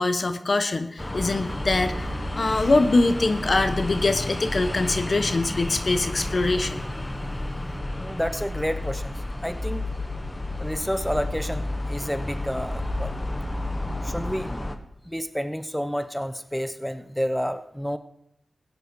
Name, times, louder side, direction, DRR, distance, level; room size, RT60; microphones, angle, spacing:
voice 1, 0.0-6.8, left 2 dB, 55° left, 10 dB, 1.1 m, -23 dB
sound 1, 1.0-14.8, left 1 dB, 20° left, 1.3 m, -31 dB
voice 2, 8.0-9.9 10.6-13.2 14.0-14.5 15.0-18.0, equal, 5° left, 11 dB, 0.8 m, -30 dB
16.0 x 9.6 x 4.7 m, 0.76 s
cardioid pair, 45°, 0 cm